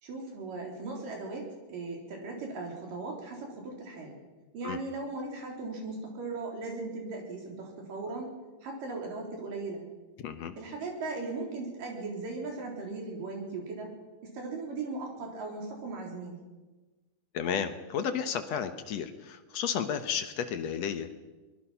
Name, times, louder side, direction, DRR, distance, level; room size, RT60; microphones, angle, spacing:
voice 1, 0.0-4.2 4.5-8.3 8.6-9.8 10.6-14.0 14.2-16.4, right 3 dB, 70° right, 1 dB, 5.4 m, -38 dB
voice 2, 10.2-10.5 17.3-21.2, left 7 dB, 65° left, 9 dB, 1.9 m, -32 dB
23.5 x 21.0 x 5.8 m, 1.2 s
omnidirectional pair, 4.0 m